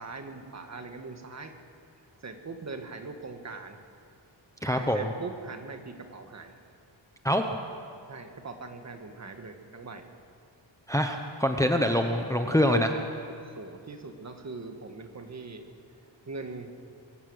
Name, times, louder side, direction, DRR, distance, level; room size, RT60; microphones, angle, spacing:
voice 1, 0.0-1.5 2.2-3.8 4.6-6.5 8.1-10.1 13.3-15.7 16.3-16.7, right 3 dB, 35° right, 6 dB, 1.7 m, -41 dB
voice 2, 4.6-5.1 7.2-7.5 10.9-13.0, equal, 5° left, 4 dB, 0.9 m, -25 dB
24.0 x 15.0 x 8.1 m, 2.3 s
wide cardioid pair, 170°, 46 cm